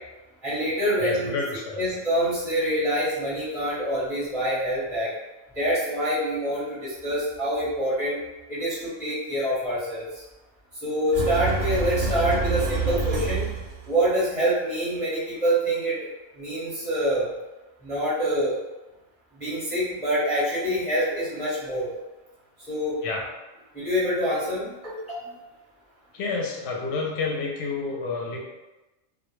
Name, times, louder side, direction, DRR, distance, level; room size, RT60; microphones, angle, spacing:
voice 1, 0.4-1.4 1.8-5.1 5.5-8.2 8.5-10.2 10.8-13.5 13.9-16.0 16.4-17.3 17.8-18.6 19.4-21.9 22.7-23.0 23.7-25.2, equal, 10° left, -11 dB, 0.5 m, -26 dB
voice 2, 1.0-1.8 23.0-23.2 26.1-28.4, left 4 dB, 65° left, -1 dB, 0.8 m, -29 dB
sound 1, 11.1-13.9, right 4 dB, 55° right, 0.6 m, -27 dB
2.2 x 2.1 x 3.0 m, 1.1 s
omnidirectional pair, 1.3 m